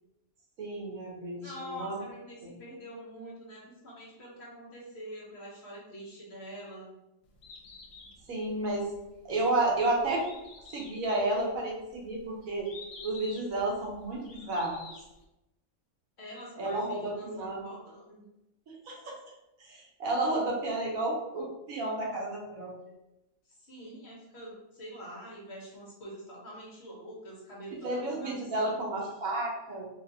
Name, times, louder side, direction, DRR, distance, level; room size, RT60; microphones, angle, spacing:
voice 1, 0.6-2.0 8.3-8.8 9.2-10.2 10.7-12.7 13.0-14.8 16.6-17.7 18.7-19.1 19.6-22.7 27.8-29.9, right 2 dB, 75° right, -3 dB, 1.3 m, -31 dB
voice 2, 1.4-6.9 16.2-18.2 23.4-28.8, equal, 55° left, -4 dB, 1.1 m, -45 dB
Bird, 7.2-15.2, left 3 dB, 75° left, 1.1 m, -50 dB
3.6 x 2.4 x 2.7 m, 0.92 s
omnidirectional pair, 1.5 m